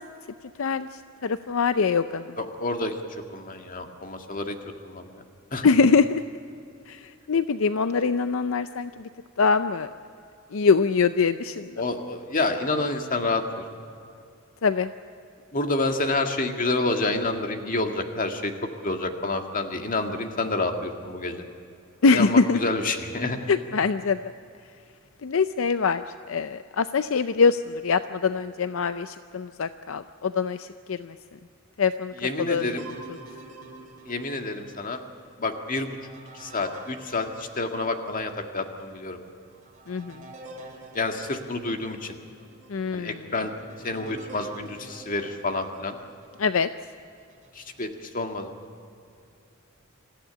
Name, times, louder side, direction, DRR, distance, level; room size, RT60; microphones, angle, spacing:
voice 1, 1.2-2.3 5.6-6.2 6.9-9.1 9.4-9.9 10.5-11.7 14.6-14.9 22.0-22.6 23.5-24.2 25.2-31.1 31.8-32.1 32.4-32.6 39.9-40.2 42.7-43.2 46.4-46.7, left 5 dB, 70° left, 11 dB, 0.5 m, -23 dB
voice 2, 2.4-3.0 3.3-4.6 4.8-5.2 5.5-5.7 11.8-13.6 15.5-18.5 18.8-21.4 22.1-23.5 32.2-32.9 34.1-35.0 35.4-36.0 36.3-39.2 40.9-42.2 42.9-43.5 43.8-46.0 47.5-48.5, left 2 dB, 40° left, 5 dB, 1.9 m, -28 dB
sound 1, 32.5-38.3 38.8-38.9 39.5-46.7 47.3-47.9, right 2 dB, 35° right, 3.7 m, -47 dB
26.0 x 14.5 x 10.0 m, 2.5 s
head